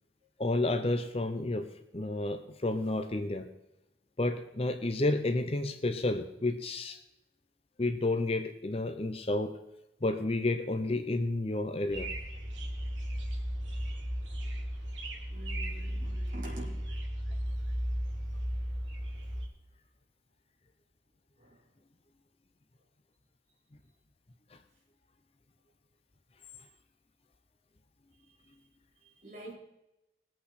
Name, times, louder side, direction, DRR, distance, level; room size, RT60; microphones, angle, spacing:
voice 1, 0.4-1.7 1.9-3.5 4.2-7.0 7.8-9.6 10.0-12.1, left 2 dB, 30° left, 8 dB, 0.7 m, -31 dB
sound 1, 11.9-19.5, equal, 80° right, 2.2 m, -35 dB
voice 2, 15.3-16.8 21.4-21.6 28.3-28.4 29.0-29.6, right 2 dB, 45° right, -2 dB, 3.3 m, -46 dB
20.0 x 8.6 x 4.1 m, 0.91 s
head